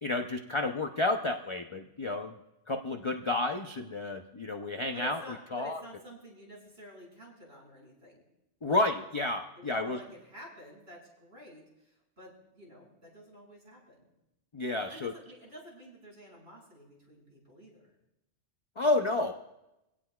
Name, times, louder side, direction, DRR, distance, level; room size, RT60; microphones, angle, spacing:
voice 1, 0.0-2.4 2.7-5.2 5.5-5.8 8.6-10.0 14.5-15.1 18.8-19.3, left 2 dB, 35° left, 5 dB, 0.5 m, -30 dB
voice 2, 4.9-8.2 8.6-8.8 9.6-14.1 14.9-17.9, equal, 60° right, -5 dB, 7.2 m, -50 dB
26.0 x 17.0 x 2.3 m, 0.92 s
omnidirectional pair, 1.2 m